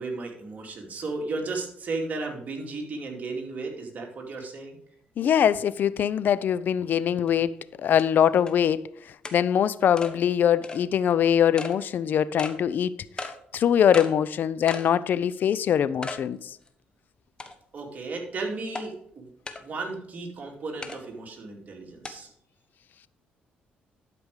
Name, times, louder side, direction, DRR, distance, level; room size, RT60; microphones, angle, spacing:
voice 1, 0.0-4.8 17.7-19.3 19.6-22.3, right 3 dB, 45° right, 2.5 m, -34 dB
voice 2, 5.2-7.5 7.8-8.8 9.3-12.9 13.2-16.6, left 9 dB, 60° left, 0.5 m, -23 dB
sound 1, 7.3-7.4 8.0-8.1 8.5-8.6 9.2-9.4 10.0-10.1 10.6-10.8 11.6-11.8 12.4-12.6 13.2-13.4 13.9-14.1 14.7-14.9 15.3-15.4 16.0-16.2 16.7-16.8 17.4-17.8 18.7-18.9 19.5-19.6 20.8-21.0 22.0-22.1, left 3 dB, 25° left, 1.2 m, -35 dB
11.5 x 5.2 x 4.8 m
cardioid pair, 80°, 4 cm